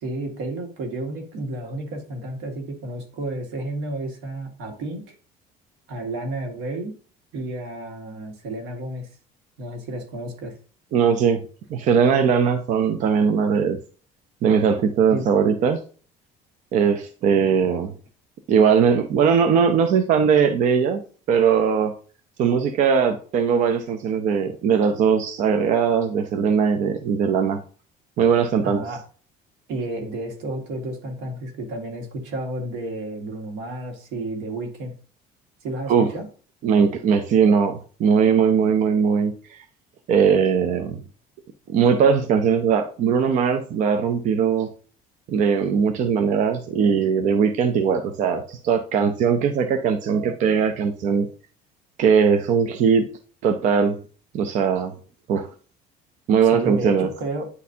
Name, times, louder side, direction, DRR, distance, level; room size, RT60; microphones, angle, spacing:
voice 1, 0.0-5.2 5.9-7.0 7.3-9.1 9.6-10.5 15.1-15.2 28.6-29.0 29.7-34.9 35.6-36.3 56.5-57.5, right 2 dB, 85° right, 2 dB, 2.0 m, -31 dB
voice 2, 10.9-11.4 11.7-13.8 14.4-15.8 16.7-17.9 18.5-21.0 21.3-21.9 22.4-27.6 28.2-28.8 35.9-36.1 36.6-39.6 40.1-41.0 41.7-44.7 45.3-51.3 52.0-53.1 53.4-54.0 54.3-54.9 55.3-55.5 56.3-57.1, right 6 dB, 45° right, 7 dB, 0.6 m, -20 dB
9.6 x 4.2 x 2.7 m, 0.40 s
cardioid pair, 165°, 17 cm